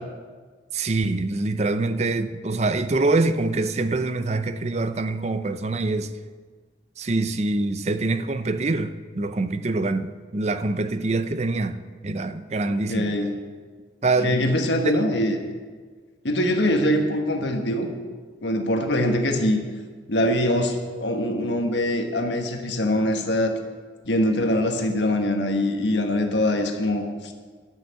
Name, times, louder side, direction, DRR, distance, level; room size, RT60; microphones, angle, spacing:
voice 1, 0.7-6.1 7.0-11.8 12.0-13.1 14.0-14.4 14.8-15.0, right 2 dB, 40° right, 0.6 m, -25 dB
voice 2, 12.7-13.4 14.2-15.4 16.2-17.9 18.4-19.6 20.1-23.5 24.0-27.3, left 1 dB, 85° left, 1.4 m, -23 dB
12.0 x 6.6 x 8.3 m
head